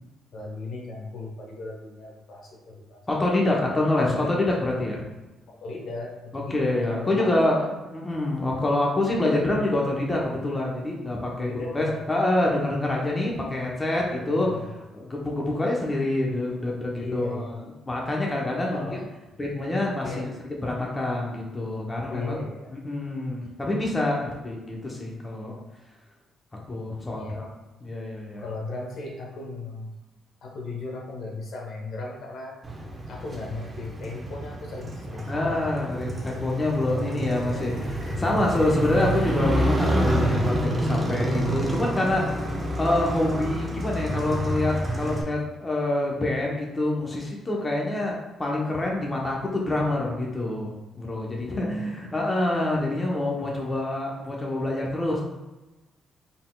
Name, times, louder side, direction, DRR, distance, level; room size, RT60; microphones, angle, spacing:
voice 1, 0.3-3.0 4.0-4.4 5.5-7.7 11.4-12.0 14.1-14.7 16.7-17.6 18.7-19.1 20.0-20.3 22.1-22.7 27.1-27.4 28.4-29.9 30.4-32.6 33.1-35.7 37.2-37.8 42.4-42.6 51.4-52.2, left 2 dB, 70° left, -1 dB, 1.0 m, -37 dB
voice 2, 3.1-5.0 6.3-7.6 7.9-14.5 14.9-18.8 19.4-20.3 20.6-22.4 22.7-25.5 26.7-27.5 27.8-28.4 35.3-37.7 38.2-42.4 42.8-55.2, left 2 dB, 20° left, -2 dB, 0.9 m, -26 dB
Motorcycle, 32.6-45.2, right 1 dB, 25° right, 0.9 m, -28 dB
4.1 x 3.5 x 2.3 m, 1.1 s
cardioid pair, 90°, 0 cm